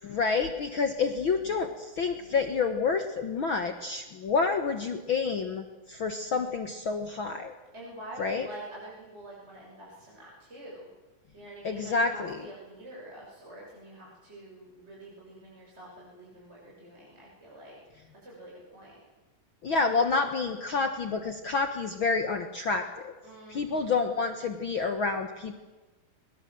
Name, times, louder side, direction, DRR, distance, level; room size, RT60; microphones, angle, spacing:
voice 1, 0.0-7.5 8.2-8.5 11.6-12.4 19.6-23.1 23.5-25.6, left 4 dB, 70° left, 7 dB, 1.1 m, -28 dB
voice 2, 7.7-10.9 11.3-17.8 18.2-19.0 23.2-24.0, right 1 dB, 15° right, -4 dB, 6.8 m, -46 dB
22.5 x 21.5 x 7.8 m, 1.2 s
omnidirectional pair, 4.3 m